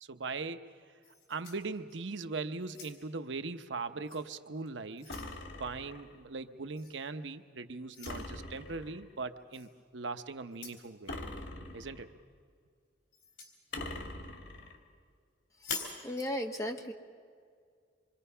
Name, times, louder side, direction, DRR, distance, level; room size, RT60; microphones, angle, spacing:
voice 1, 0.0-0.6 1.3-5.2 5.6-11.1 11.7-12.1, right 4 dB, 75° right, 9 dB, 0.8 m, -40 dB
sound 1, 1.0-2.2 2.6-3.3 4.1-4.2 4.7-5.4 6.8-7.0 7.9-8.2 9.5-9.7 10.5-10.9 13.1-13.6 15.5-16.0, left 4 dB, 90° left, 4.2 m, -44 dB
sound 2, 5.1-6.2 8.1-9.1 11.1-12.2 13.7-14.8, left 2 dB, 70° left, 2.3 m, -43 dB
voice 2, 15.6-16.9, equal, 15° left, 3 dB, 1.3 m, -37 dB
26.5 x 23.5 x 5.6 m, 2.1 s
head